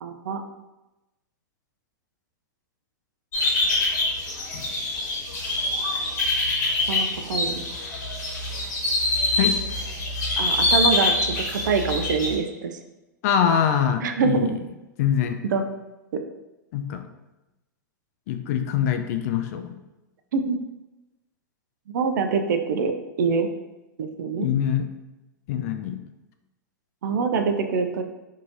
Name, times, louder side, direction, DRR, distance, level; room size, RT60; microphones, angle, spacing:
voice 1, 0.0-0.4 6.9-7.6 10.4-12.7 14.0-14.5 15.5-15.6 20.3-20.6 21.9-22.9 23.2-23.5 24.0-24.5 27.0-28.0, right 5 dB, 65° right, 6 dB, 0.4 m, -24 dB
sound 1, 3.3-12.3, left 2 dB, 65° left, 1.1 m, -25 dB
voice 2, 13.2-14.5 15.0-15.4 16.7-17.0 18.3-19.7 24.4-24.9 25.5-26.0, left 8 dB, 50° left, 7 dB, 0.4 m, -24 dB
3.0 x 2.6 x 2.5 m, 1.0 s
hypercardioid pair, 100°, 11 cm